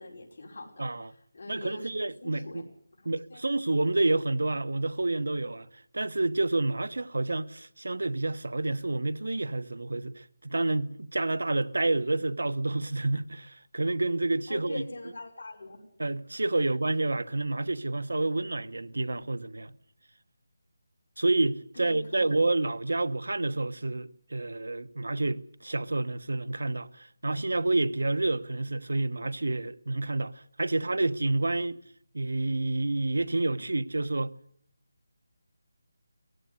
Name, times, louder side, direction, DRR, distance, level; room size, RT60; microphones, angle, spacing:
voice 1, 0.0-2.6 3.0-3.4 14.5-15.9 21.7-22.4, left 2 dB, 45° left, 5.4 m, -43 dB
voice 2, 0.8-1.1 1.5-2.7 3.0-5.7 5.9-14.8 16.0-19.7 21.2-31.8 32.1-34.3, right 2 dB, 90° right, 1.2 m, -29 dB
17.5 x 16.0 x 9.5 m
figure-of-eight pair, 175°, 0 cm